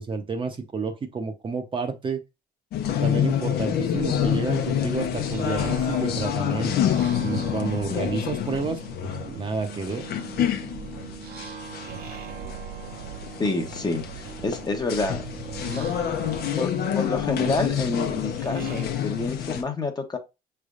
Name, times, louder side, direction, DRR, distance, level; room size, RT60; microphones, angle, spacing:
voice 1, 0.0-2.2 3.0-6.7 7.2-10.0, right 4 dB, 30° right, 0.8 m, -30 dB
sound 1, 2.7-19.6, left 9 dB, 70° left, 0.9 m, -28 dB
sound 2, 3.9-18.9, right 6 dB, 65° right, 1.0 m, -39 dB
voice 2, 13.4-15.2 15.7-15.9 16.6-20.2, left 3 dB, 25° left, 1.0 m, -28 dB
6.0 x 3.4 x 2.5 m
cardioid pair, 110°, 17 cm